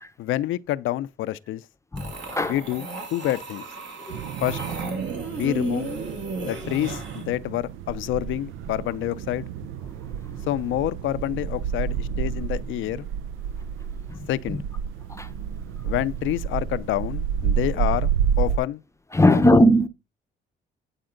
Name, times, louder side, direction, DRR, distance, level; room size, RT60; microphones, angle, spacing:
voice 1, 0.2-1.6 2.5-3.6 4.4-4.6 5.3-5.9 6.4-9.5 10.5-13.1 14.3-14.6 15.8-18.1 18.4-18.8 19.2-19.4, left 14 dB, 80° left, 0.5 m, -27 dB
voice 2, 1.9-2.6 4.1-4.2 5.2-5.3 6.5-6.7 14.1-14.2 14.5-14.6 15.1-15.4 19.1-19.9, left 1 dB, 15° left, 0.6 m, -20 dB
sound 1, 2.0-7.3, right 4 dB, 65° right, 2.6 m, -34 dB
sound 2, 4.1-18.6, right 8 dB, 85° right, 0.5 m, -30 dB
9.0 x 4.3 x 3.8 m
cardioid pair, 90°, 20 cm